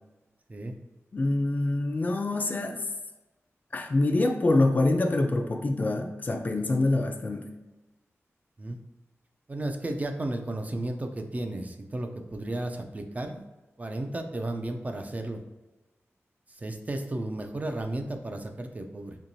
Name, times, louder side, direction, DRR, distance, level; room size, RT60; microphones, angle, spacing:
voice 1, 1.1-2.8 3.7-7.5, left 2 dB, 35° left, 3 dB, 0.4 m, -25 dB
voice 2, 9.5-13.4 13.8-15.4 16.5-19.2, right 1 dB, 30° right, 5 dB, 0.4 m, -33 dB
4.4 x 2.9 x 2.7 m, 1.1 s
wide cardioid pair, 115°, 5 cm